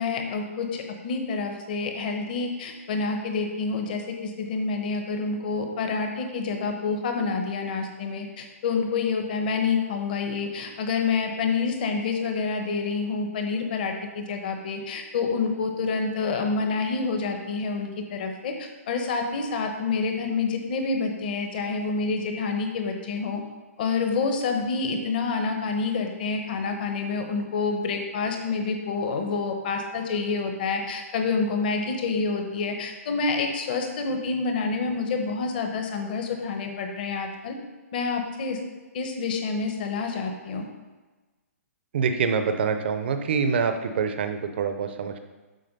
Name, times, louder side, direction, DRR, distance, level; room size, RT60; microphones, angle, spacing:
voice 1, 0.0-23.4 23.8-37.6 37.9-38.6 38.9-40.7, left 4 dB, 35° left, 4 dB, 1.0 m, -28 dB
voice 2, 41.9-45.2, right 5 dB, 45° right, 7 dB, 0.6 m, -25 dB
7.7 x 4.8 x 5.3 m, 1.2 s
hypercardioid pair, 170°, 8 cm